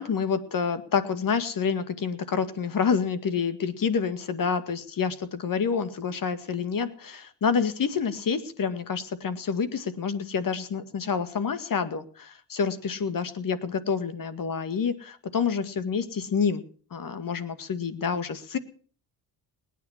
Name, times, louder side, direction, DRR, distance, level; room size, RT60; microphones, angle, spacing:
voice 1, 0.0-16.6 16.9-18.6, left 6 dB, 50° left, 11 dB, 2.1 m, -28 dB
20.5 x 9.5 x 7.4 m, 0.44 s
cardioid pair, 75°, 41 cm